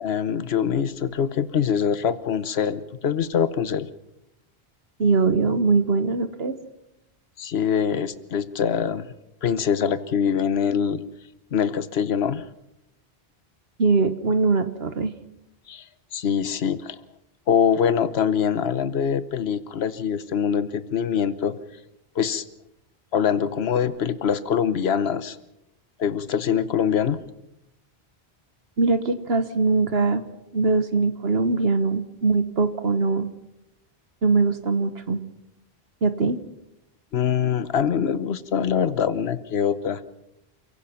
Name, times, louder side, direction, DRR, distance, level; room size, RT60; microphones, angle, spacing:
voice 1, 0.0-3.9 7.4-9.1 9.4-11.0 11.5-12.4 15.7-15.8 16.1-17.0 17.5-21.6 22.1-22.4 23.1-25.4 26.0-27.2 37.1-40.0, left 7 dB, 80° left, 13 dB, 1.2 m, -24 dB
voice 2, 5.0-6.5 13.8-15.1 28.8-30.2 30.5-33.3 34.2-35.2 36.0-36.4, right 4 dB, 75° right, 10 dB, 1.4 m, -22 dB
29.0 x 16.5 x 5.8 m, 0.87 s
omnidirectional pair, 1.0 m